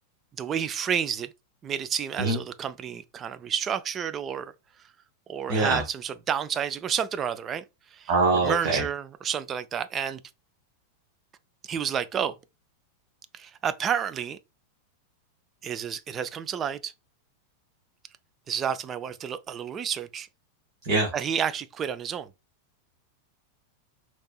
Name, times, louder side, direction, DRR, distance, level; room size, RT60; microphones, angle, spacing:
voice 1, 0.4-1.3 1.6-4.5 5.3-7.6 7.9-8.1 8.4-10.2 11.6-12.3 13.3-14.4 15.6-16.9 18.5-20.3 21.1-22.3, right 8 dB, 25° right, 0.3 m, -30 dB
voice 2, 5.5-5.8 8.1-8.8 20.8-21.1, right 3 dB, 45° right, 1.0 m, -23 dB
4.2 x 2.9 x 2.3 m
figure-of-eight pair, 90°, 0 cm